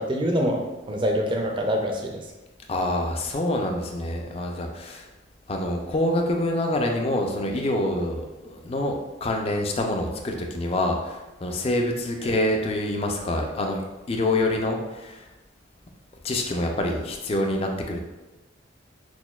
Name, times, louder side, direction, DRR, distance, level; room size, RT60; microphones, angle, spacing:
voice 1, 0.0-2.2, equal, 25° right, 2 dB, 0.5 m, -25 dB
voice 2, 2.7-5.1 5.5-13.8 14.1-15.2 16.2-18.0, left 1 dB, 30° left, 2 dB, 0.4 m, -26 dB
6.0 x 2.3 x 2.3 m, 1.1 s
head